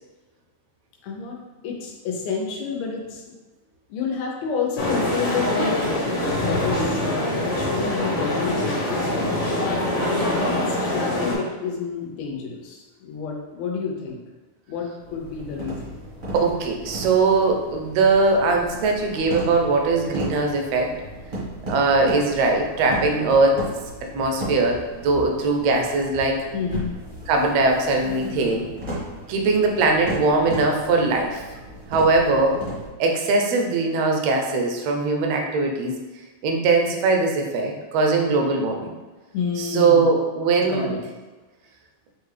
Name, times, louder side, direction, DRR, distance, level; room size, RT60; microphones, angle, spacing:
voice 1, 1.0-3.4 3.9-6.9 7.3-9.4 10.0-14.2 14.7-16.0 26.5-26.9 39.3-40.1 40.6-41.0, left 5 dB, 75° left, -1 dB, 1.9 m, -30 dB
sound 1, 4.8-11.4, left 1 dB, 55° left, 2.0 m, -24 dB
sound 2, 15.0-32.9, right 1 dB, 35° right, 0.7 m, -35 dB
voice 2, 16.3-20.9 21.7-23.6 24.1-26.4 27.3-28.7 29.3-31.4 31.9-32.6 33.0-36.0 36.4-39.0 39.6-40.9, right 3 dB, 75° right, 2 dB, 1.6 m, -21 dB
5.9 x 2.4 x 3.2 m, 1.2 s
omnidirectional pair, 3.3 m